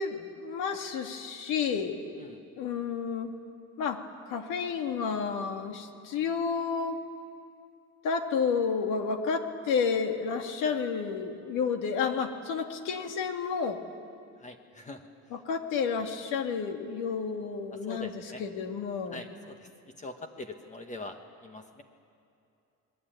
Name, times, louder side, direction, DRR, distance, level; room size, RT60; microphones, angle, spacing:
voice 1, 0.0-2.0 2.6-3.3 3.8-7.0 8.0-13.8 15.3-19.2, left 5 dB, 85° left, 5 dB, 2.2 m, -31 dB
voice 2, 14.4-15.0 17.9-18.4 19.1-19.5 20.0-21.8, left 2 dB, 25° left, 6 dB, 1.2 m, -43 dB
25.0 x 21.5 x 9.2 m, 2.6 s
cardioid pair, 160°, 30 cm